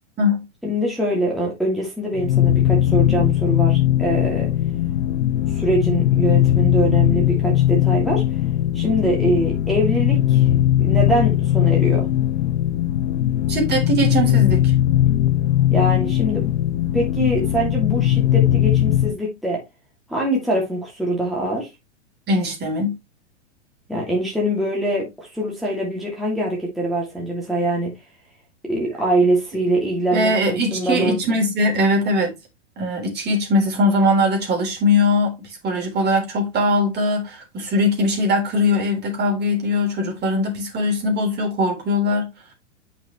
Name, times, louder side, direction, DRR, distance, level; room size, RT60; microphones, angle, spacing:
voice 1, 0.6-4.5 5.5-8.2 8.7-10.5 10.8-12.1 15.7-16.5 16.9-19.6 20.1-21.7 23.9-27.9 28.7-31.2, right 1 dB, ahead, 2.7 m, -23 dB
sound 1, 2.2-19.2, left 12 dB, 65° left, 0.7 m, -19 dB
voice 2, 13.5-14.7 22.3-23.0 30.1-32.3 32.8-42.3, left 1 dB, 30° right, 3.7 m, -21 dB
8.3 x 5.8 x 3.2 m
hypercardioid pair, 105°, 35 cm